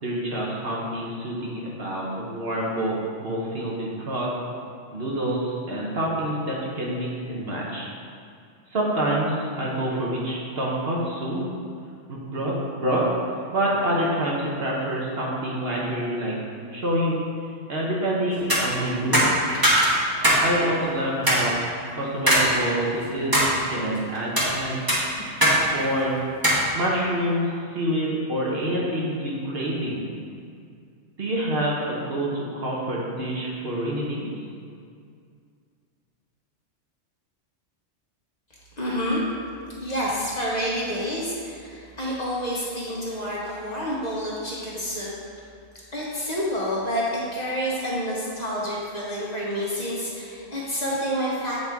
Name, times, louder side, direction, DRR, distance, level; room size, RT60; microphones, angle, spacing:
voice 1, 0.0-4.3 4.9-7.9 8.7-11.4 12.1-13.1 13.5-16.4 16.7-17.2 17.7-19.2 20.4-21.5 21.9-24.8 25.7-26.2 26.7-30.1 31.2-34.3, right 1 dB, 55° right, -4 dB, 1.2 m, -27 dB
sound 1, 18.4-18.6 19.1-20.4 20.8-20.9 21.3-21.4 22.3-22.5 22.9-23.5 24.1-24.5 24.9-25.6 25.8-25.9 26.4-26.6, equal, 20° right, 1.2 m, -19 dB
voice 2, 38.8-39.2 39.8-45.1 45.9-47.0 47.3-51.6, equal, 35° left, -6 dB, 1.1 m, -28 dB
7.9 x 4.4 x 3.5 m, 2.3 s
omnidirectional pair, 1.3 m